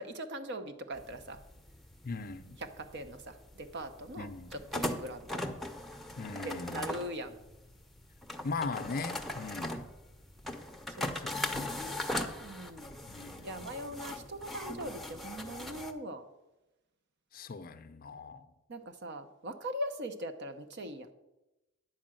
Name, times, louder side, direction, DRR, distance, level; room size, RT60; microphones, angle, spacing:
voice 1, 0.0-1.4 2.6-5.4 6.4-7.4 11.0-11.1 11.6-13.0 13.4-16.2 18.7-21.1, right 1 dB, 55° right, 0.8 m, -41 dB
sound 1, 0.9-15.9, left 1 dB, ahead, 0.6 m, -40 dB
voice 2, 2.0-2.6 4.2-4.5 6.2-6.9 8.4-9.8 11.1-11.7 13.1-13.7 17.3-18.5, left 4 dB, 45° left, 0.5 m, -40 dB
10.0 x 4.8 x 7.6 m
head